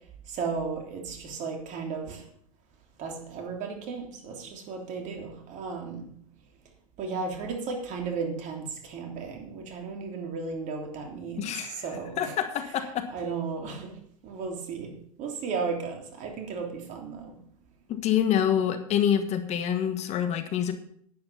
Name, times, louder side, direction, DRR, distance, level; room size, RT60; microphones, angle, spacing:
voice 1, 0.3-2.2 3.0-6.1 7.0-12.3 13.1-13.9 14.2-14.9 15.2-17.4, right 5 dB, 45° right, 2 dB, 3.2 m, -34 dB
voice 2, 11.4-11.8 12.2-13.1 17.9-20.7, left 9 dB, 40° left, 8 dB, 1.5 m, -26 dB
10.5 x 9.7 x 5.7 m, 0.64 s
hypercardioid pair, 95°, 18 cm